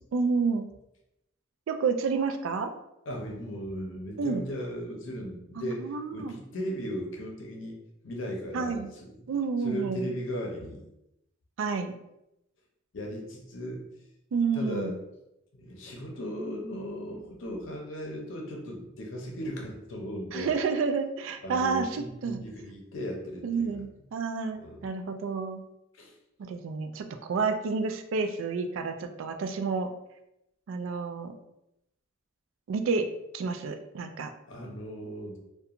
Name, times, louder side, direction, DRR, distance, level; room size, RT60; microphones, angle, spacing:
voice 1, 0.1-0.7 1.7-2.7 4.2-4.4 5.6-6.3 8.5-8.9 9.3-10.1 11.6-11.9 14.3-15.0 20.3-22.4 23.4-25.6 26.4-29.9 30.7-31.3 32.7-33.1 33.3-34.3, right 5 dB, 90° right, 7 dB, 0.3 m, -30 dB
voice 2, 3.1-7.8 8.0-9.1 9.6-10.9 12.9-13.9 14.5-15.0 15.6-20.6 21.4-23.8 24.6-24.9 25.9-26.1 34.5-35.4, equal, 80° left, 0 dB, 0.6 m, -37 dB
2.8 x 2.2 x 2.4 m, 0.85 s
head